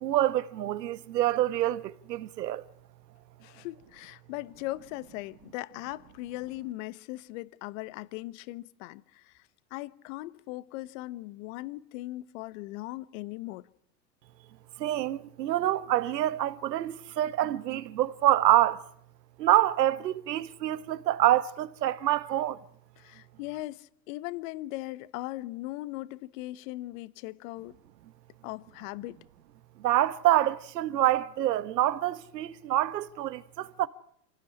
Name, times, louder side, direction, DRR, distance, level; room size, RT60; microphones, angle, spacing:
voice 1, 0.0-2.6 14.8-18.8 19.4-22.6 29.8-33.9, right 13 dB, 75° right, 1.5 m, -26 dB
voice 2, 3.4-9.4 9.7-13.7 23.0-27.8 28.4-29.2, left 18 dB, 50° left, 1.2 m, -39 dB
26.0 x 18.0 x 10.0 m
hypercardioid pair, 115°, 50 cm